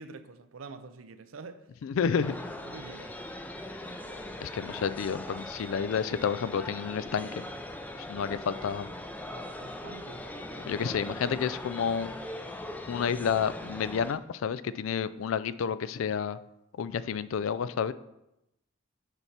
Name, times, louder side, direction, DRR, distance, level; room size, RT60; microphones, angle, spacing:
voice 1, 0.0-1.6 2.1-2.3 2.6-3.1 4.4-4.5 9.6-10.3, right 4 dB, 90° right, 0.6 m, -46 dB
voice 2, 1.8-2.3 4.4-7.4 8.0-8.9 10.7-12.1 12.9-16.4 16.8-17.9, left 7 dB, 80° left, 0.3 m, -30 dB
sound 1, 2.2-14.1, left 1 dB, 10° left, 0.4 m, -40 dB
6.8 x 4.6 x 5.7 m
head